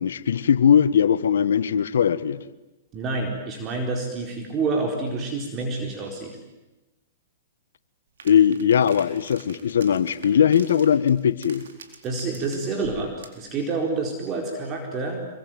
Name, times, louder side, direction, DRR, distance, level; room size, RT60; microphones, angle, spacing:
voice 1, 0.0-2.4 8.2-11.6, left 8 dB, 75° left, 15 dB, 1.3 m, -20 dB
voice 2, 2.9-6.4 12.0-15.2, right 3 dB, 30° right, 2 dB, 4.4 m, -28 dB
sound 1, 8.2-13.5, right 5 dB, 75° right, 4.2 m, -46 dB
26.5 x 23.5 x 9.2 m, 1.1 s
hypercardioid pair, 125°, 0 cm